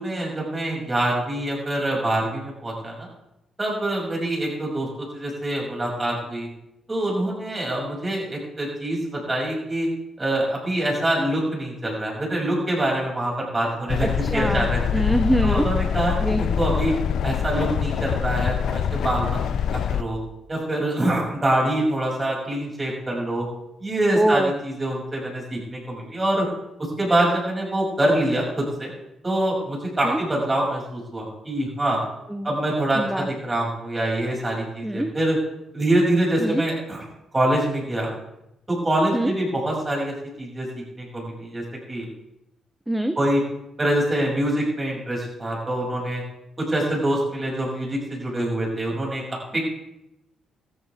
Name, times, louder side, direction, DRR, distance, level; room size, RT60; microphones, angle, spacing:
voice 1, 0.0-3.1 3.6-6.5 6.9-9.9 10.2-14.8 15.4-16.9 17.2-19.4 19.7-20.2 20.5-23.4 23.8-26.5 27.0-28.9 29.2-32.0 32.4-35.4 35.7-37.0 37.3-38.1 38.7-40.7 40.9-42.1 43.2-43.4 43.8-46.2 46.6-49.6, right 1 dB, 20° right, -2 dB, 6.7 m, -25 dB
sound 1, 13.9-20.0, left 8 dB, 70° left, 0.6 m, -24 dB
voice 2, 14.0-15.7 16.2-16.4 24.2-24.5 30.0-30.2 32.3-32.5 32.9-33.3 34.8-35.1 36.4-36.7 39.1-39.3 42.9-43.2, right 1 dB, 5° right, 8 dB, 0.8 m, -24 dB
15.5 x 14.0 x 3.6 m, 0.87 s
cardioid pair, 90°, 0 cm